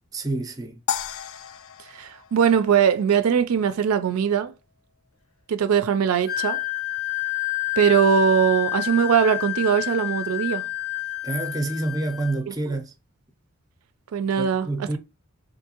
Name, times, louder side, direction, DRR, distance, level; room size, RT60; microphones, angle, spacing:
voice 1, 0.1-0.8 11.2-12.9 14.4-15.0, right 2 dB, 15° right, 0.4 m, -28 dB
sound 1, 0.9-3.3, left 8 dB, 65° left, 0.3 m, -33 dB
voice 2, 1.9-4.5 5.5-6.6 7.8-10.7 12.5-12.6 14.1-15.0, right 7 dB, 85° right, 0.4 m, -21 dB
Wind instrument woodwind instrument, 6.2-12.4, left 19 dB, 90° left, 1.2 m, -29 dB
3.6 x 2.6 x 2.8 m
head